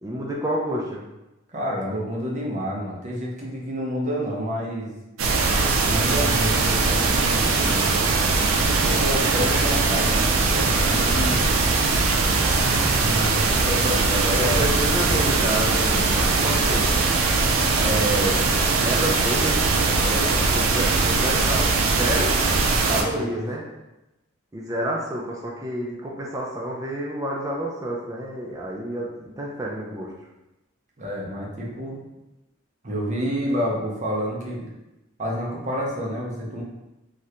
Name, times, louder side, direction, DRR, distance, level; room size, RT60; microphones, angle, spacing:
voice 1, 0.0-1.0 9.3-9.4 14.3-16.9 17.7-18.5 18.8-19.6 20.0-22.4 22.9-23.7 24.5-30.1, right 1 dB, 15° right, -3 dB, 0.3 m, -29 dB
voice 2, 1.5-5.0 5.8-8.2 8.8-11.4 12.6-14.6 22.9-23.5 31.0-32.0 32.8-34.7 35.2-36.6, equal, 35° right, -3 dB, 0.7 m, -29 dB
sound 1, 5.2-23.0, right 3 dB, 85° right, 0.4 m, -21 dB
2.7 x 2.5 x 3.2 m, 0.97 s
head